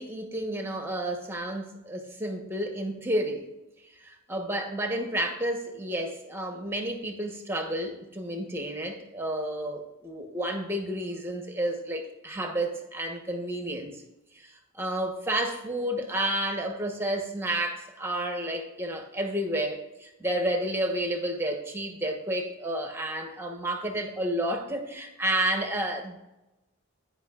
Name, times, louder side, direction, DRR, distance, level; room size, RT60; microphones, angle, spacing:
voice 1, 0.0-3.5 3.8-14.0 14.3-26.2, right 1 dB, 10° right, 3 dB, 1.0 m, -31 dB
17.0 x 5.8 x 2.4 m, 0.98 s
head